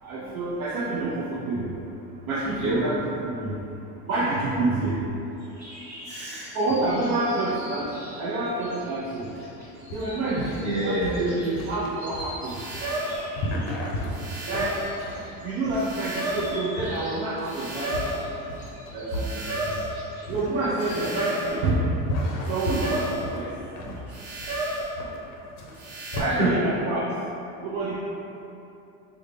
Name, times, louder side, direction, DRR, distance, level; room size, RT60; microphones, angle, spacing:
voice 1, 0.0-1.8 2.3-3.1 3.4-3.6 4.1-5.0 6.5-9.3 9.9-10.5 10.8-12.6 14.5-14.8 15.4-18.0 18.9-19.7 20.3-21.9 22.5-23.5 26.2-27.1 27.6-28.0, right 2 dB, 40° right, -7 dB, 0.4 m, -28 dB
sound 1, 5.3-21.0, equal, 10° left, 1.1 m, -46 dB
voice 2, 6.0-6.5 10.3-11.3 13.7-13.8 23.8-24.0 26.3-26.5, right 1 dB, 20° right, -10 dB, 1.0 m, -28 dB
sound 2, 9.9-26.2, left 1 dB, 65° left, 0.6 m, -34 dB
sound 3, 12.4-13.3 14.1-14.9 15.8-16.6 17.4-18.3 19.1-19.9 20.8-21.6 22.4-23.3 24.1-24.9 25.8-26.2, right 2 dB, 70° right, 1.0 m, -32 dB
3.6 x 2.1 x 3.3 m, 2.9 s
cardioid pair, 165°, 36 cm